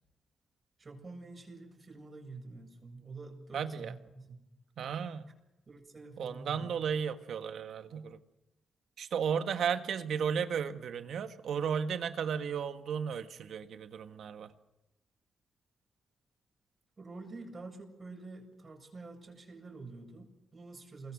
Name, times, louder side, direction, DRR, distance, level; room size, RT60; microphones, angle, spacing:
voice 1, 0.8-4.4 5.7-6.8 17.0-21.1, right 3 dB, 40° right, 2 dB, 7.7 m, -47 dB
voice 2, 3.5-3.9 4.8-5.3 6.2-8.2 9.0-14.5, right 7 dB, 75° right, 8 dB, 1.6 m, -34 dB
28.0 x 23.0 x 6.5 m, 0.94 s
supercardioid pair, 55°, 0 cm